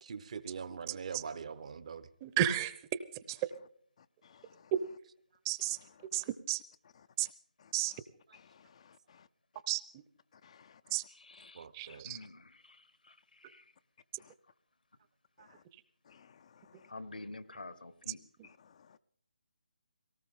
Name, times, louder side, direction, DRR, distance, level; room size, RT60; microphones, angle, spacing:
voice 1, 0.0-2.1 11.5-12.1 15.4-15.5, right 6 dB, 50° right, 1.0 m, -43 dB
voice 2, 2.2-2.7 3.3-3.4 5.5-5.8 6.1-6.6 7.2-7.3 7.7-7.9 9.7-9.8 10.9-11.0 11.7-12.2, right 13 dB, 20° right, 0.8 m, -32 dB
voice 3, 8.8-9.2 10.4-11.0 11.9-12.0 16.1-16.3, left 7 dB, 45° left, 0.5 m, -60 dB
voice 4, 11.1-11.7 12.0-13.6 16.9-18.2, left 2 dB, 80° left, 1.6 m, -49 dB
18.5 x 18.0 x 3.8 m
figure-of-eight pair, 150°, 5 cm